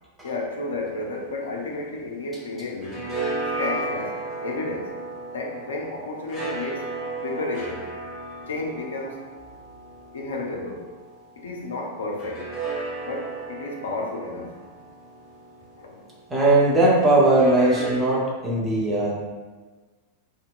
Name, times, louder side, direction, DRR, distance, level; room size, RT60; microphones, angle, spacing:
voice 1, 0.2-3.0 3.6-5.0 5.3-6.9 7.2-7.9 8.5-9.2 10.1-10.9 11.4-12.5 13.0-14.5 15.8-16.1, left 2 dB, 65° left, 0 dB, 0.4 m, -32 dB
sound 1, 0.7-2.3 2.6-11.3 12.2-16.3 17.2-17.9, right 2 dB, 15° left, 1.0 m, -35 dB
voice 2, 16.3-19.1, right 2 dB, 10° right, -6 dB, 0.7 m, -19 dB
2.8 x 2.1 x 2.4 m, 1.3 s
figure-of-eight pair, 90°, 0 cm